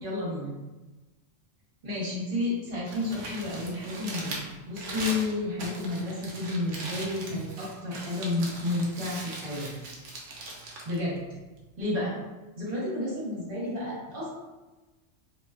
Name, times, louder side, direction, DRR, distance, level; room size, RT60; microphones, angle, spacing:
voice 1, 0.0-0.5 1.8-9.7 10.8-11.2 11.8-12.2 12.6-14.3, left 2 dB, 45° right, -7 dB, 1.1 m, -31 dB
Crumpling crinkling, 2.7-11.8, right 2 dB, 75° right, 0.9 m, -40 dB
2.7 x 2.2 x 2.3 m, 1.2 s
omnidirectional pair, 1.3 m